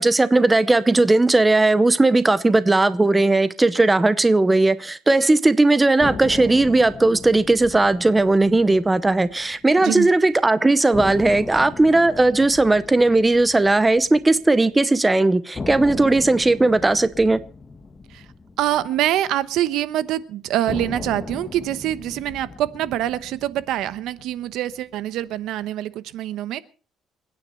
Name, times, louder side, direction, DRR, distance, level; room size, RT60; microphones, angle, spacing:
voice 1, 0.0-17.4, right 2 dB, 10° right, 0.7 m, -17 dB
sound 1, 6.0-10.1 10.4-10.5 10.9-15.0 15.6-19.9 20.7-25.0, left 4 dB, 20° left, 1.4 m, -37 dB
voice 2, 18.6-26.6, right 13 dB, 75° right, 1.0 m, -25 dB
27.5 x 9.7 x 4.3 m
cardioid pair, 140°, 0 cm